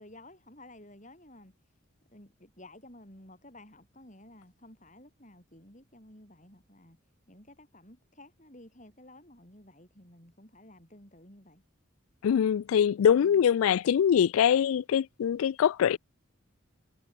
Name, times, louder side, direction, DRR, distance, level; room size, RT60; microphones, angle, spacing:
voice 1, 0.0-1.7 2.1-7.0 7.3-11.6 13.1-13.4, left 1 dB, 35° left, 7.6 m, -53 dB
voice 2, 12.2-16.0, left 8 dB, 90° left, 0.3 m, -23 dB
head